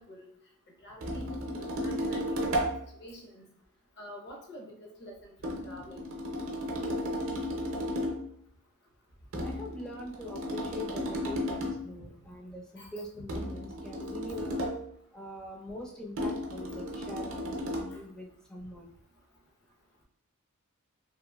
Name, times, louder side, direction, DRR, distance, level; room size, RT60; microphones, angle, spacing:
voice 1, 0.8-2.4 3.0-3.5 4.0-6.2 12.8-12.9, equal, 50° left, 0 dB, 0.7 m, -47 dB
sound 1, 1.0-2.8 5.4-8.3 9.3-11.9 13.3-14.9 16.2-18.0, equal, 60° right, 0.6 m, -34 dB
voice 2, 9.4-14.6 15.1-18.9, left 1 dB, 5° left, -2 dB, 0.4 m, -43 dB
2.9 x 2.5 x 2.3 m, 0.66 s
head